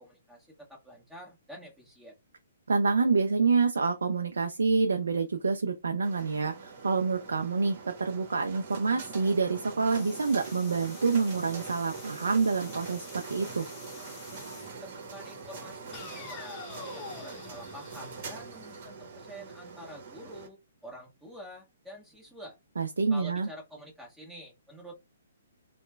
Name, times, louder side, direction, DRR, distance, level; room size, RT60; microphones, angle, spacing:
voice 1, 0.0-2.1 14.8-20.6 20.8-22.5 23.1-24.9, equal, 5° right, 1.3 m, -48 dB
voice 2, 2.7-13.7 22.8-23.5, right 4 dB, 80° right, 0.4 m, -27 dB
sound 1, 6.0-20.5, right 4 dB, 50° right, 1.0 m, -44 dB
sound 2, 9.8-14.8 15.9-18.8, left 4 dB, 25° left, 0.9 m, -47 dB
3.0 x 2.1 x 2.2 m
hypercardioid pair, 130°, 0 cm